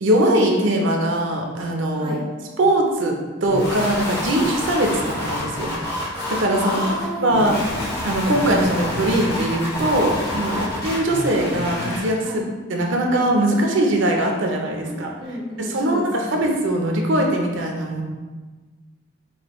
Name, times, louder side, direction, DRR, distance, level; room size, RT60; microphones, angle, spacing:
voice 1, 0.0-2.2 2.6-5.7 6.3-6.8 7.2-7.6 8.0-12.4 12.7-15.1 15.6-18.0, right 1 dB, 70° right, 1 dB, 0.6 m, -21 dB
sound 1, 3.4-12.2, left 1 dB, 50° left, 0.9 m, -28 dB
voice 2, 6.6-7.9 10.4-10.7 12.2-12.4 14.8-16.3, right 1 dB, 25° right, -4 dB, 0.5 m, -32 dB
4.9 x 2.2 x 3.0 m, 1.3 s
head